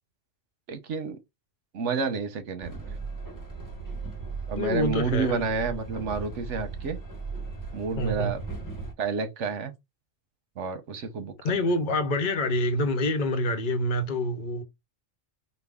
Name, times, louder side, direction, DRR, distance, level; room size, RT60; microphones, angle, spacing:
voice 1, 0.7-1.2 1.7-2.8 4.5-7.0 7.7-8.4 9.0-9.7 10.6-11.3, right 5 dB, 80° right, 1.1 m, -30 dB
Train, 2.6-8.9, right 4 dB, 15° left, 1.1 m, -37 dB
voice 2, 4.6-5.5 7.9-8.3 11.4-14.6, left 1 dB, 45° left, 1.0 m, -26 dB
5.2 x 2.4 x 3.5 m
omnidirectional pair, 1.2 m